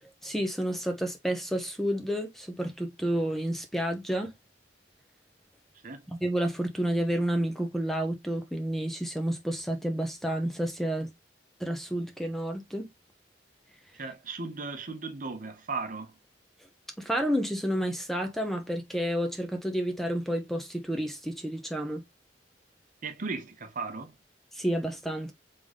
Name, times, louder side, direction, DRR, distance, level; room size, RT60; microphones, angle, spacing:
voice 1, 0.0-4.3 6.1-11.1 11.6-12.9 13.8-14.0 16.6-16.7 17.0-22.0 24.5-25.3, equal, ahead, 0.8 m, -30 dB
voice 2, 13.9-16.1 23.0-24.1, right 4 dB, 45° right, 0.8 m, -36 dB
3.8 x 3.7 x 3.4 m
head